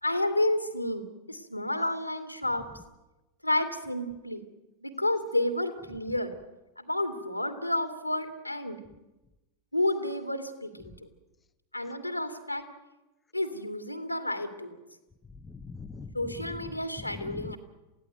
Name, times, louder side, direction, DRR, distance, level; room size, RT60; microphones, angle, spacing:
voice 1, 0.0-2.7 3.4-4.4 4.8-6.3 6.8-8.8 9.7-11.1 11.7-12.7 13.3-14.8 16.1-17.6, left 1 dB, 90° left, 8 dB, 2.5 m, -30 dB
voice 2, 15.4-16.6 17.0-17.6, left 4 dB, 15° left, 7 dB, 1.2 m, -42 dB
28.0 x 16.5 x 9.3 m, 1.0 s
figure-of-eight pair, 90°, 0 cm